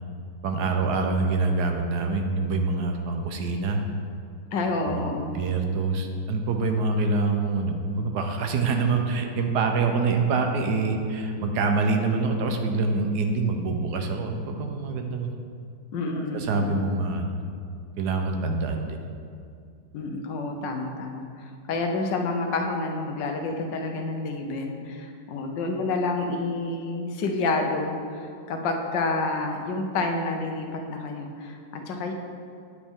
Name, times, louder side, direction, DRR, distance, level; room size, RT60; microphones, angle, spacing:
voice 1, 0.4-3.8 4.8-15.3 16.3-17.3 18.0-19.0, right 3 dB, 70° right, 4 dB, 1.3 m, -25 dB
voice 2, 4.5-5.3 15.9-16.8 19.9-32.1, left 3 dB, 85° left, 3 dB, 1.5 m, -29 dB
9.5 x 7.2 x 3.6 m, 2.3 s
omnidirectional pair, 1.9 m